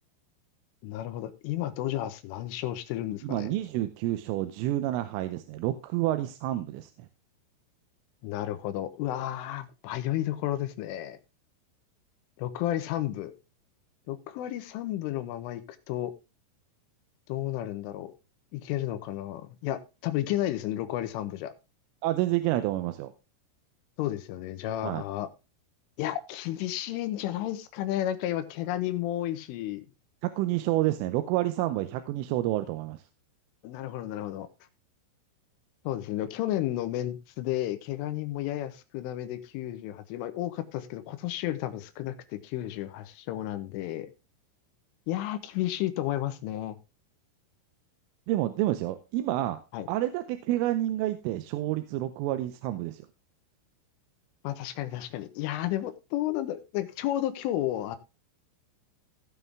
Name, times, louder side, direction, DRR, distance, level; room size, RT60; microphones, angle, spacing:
voice 1, 0.8-3.5 8.2-11.2 12.4-13.3 14.1-16.1 17.3-18.1 18.5-21.5 24.0-25.3 26.0-29.9 33.6-34.5 35.9-44.1 45.1-46.8 49.7-49.9 54.4-58.0, left 13 dB, 80° left, 11 dB, 3.4 m, -32 dB
voice 2, 3.2-6.9 22.0-23.1 24.8-25.0 30.2-33.0 48.3-49.6 49.9-53.1, right 15 dB, 85° right, 10 dB, 3.2 m, -29 dB
16.5 x 5.6 x 3.5 m, 0.29 s
omnidirectional pair, 5.7 m